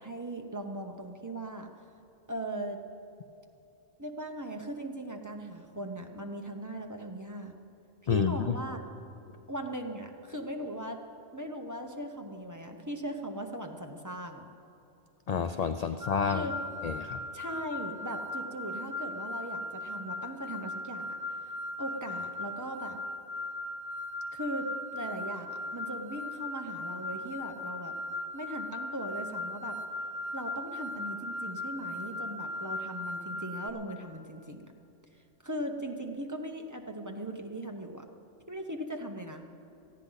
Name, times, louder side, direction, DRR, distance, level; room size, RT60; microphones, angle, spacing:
voice 1, 0.0-1.7 2.3-2.8 4.0-7.5 8.0-8.8 9.5-11.0 11.3-14.4 16.3-16.5 17.3-21.5 21.8-23.0 24.3-28.0 28.3-29.8 30.3-34.7 35.4-38.0 38.5-39.4, right 1 dB, 15° right, 3 dB, 1.0 m, -39 dB
voice 2, 8.1-8.6 15.3-16.5 16.8-17.2, left 6 dB, 55° left, 9 dB, 0.4 m, -29 dB
sound 1, 16.0-33.7, left 2 dB, 35° right, 1.2 m, -38 dB
18.5 x 14.5 x 4.0 m, 2.9 s
omnidirectional pair, 1.2 m